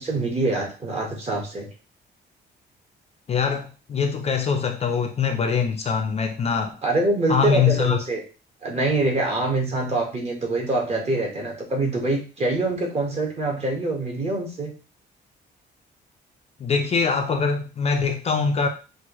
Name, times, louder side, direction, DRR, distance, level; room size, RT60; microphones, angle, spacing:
voice 1, 0.0-1.7 6.8-8.2 8.6-14.7, right 2 dB, 35° right, 0 dB, 1.4 m, -25 dB
voice 2, 3.3-6.7 7.3-8.0 16.6-18.7, left 6 dB, 35° left, 4 dB, 0.5 m, -23 dB
6.0 x 2.6 x 3.0 m, 0.34 s
cardioid pair, 160°, 19 cm